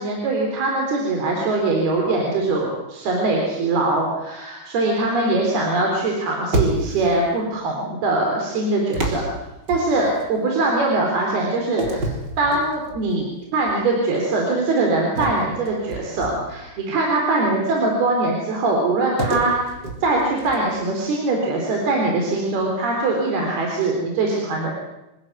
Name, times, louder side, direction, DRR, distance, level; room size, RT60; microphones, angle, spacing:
voice 1, 0.0-9.2 9.7-12.1 12.4-19.7 20.0-24.7, right 2 dB, 80° right, 0 dB, 5.8 m, -22 dB
sound 1, 6.5-7.2 8.9-10.3 11.8-13.1 13.6-13.8 15.2-16.7 19.2-20.8, right 2 dB, 25° right, 4.7 m, -27 dB
27.5 x 20.0 x 9.5 m, 0.96 s
omnidirectional pair, 4.4 m